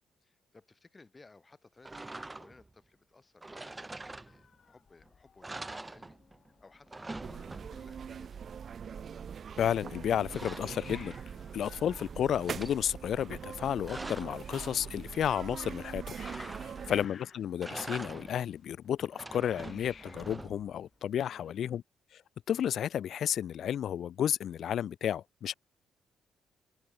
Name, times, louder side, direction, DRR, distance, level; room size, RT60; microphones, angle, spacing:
voice 1, 0.2-6.2 6.6-8.4 16.8-17.0 21.3-21.8, left 3 dB, 25° left, 7.5 m, -59 dB
sound 1, 1.8-2.7 3.4-4.7 5.0-5.1 5.4-6.5 6.7-8.0 9.7-11.5 11.9-12.8 13.5-14.4 16.2-17.0 17.5-18.5 19.0-20.8, right 2 dB, 15° right, 1.1 m, -45 dB
Hiss, 4.3-21.6, left 6 dB, 45° left, 4.2 m, -59 dB
sound 2, 7.2-17.1, right 7 dB, 50° right, 0.4 m, -43 dB
voice 2, 9.6-11.1 11.5-16.0 16.6-21.8 22.1-22.2 22.5-25.5, left 9 dB, 65° left, 0.4 m, -32 dB
open air
cardioid pair, 90°, 0 cm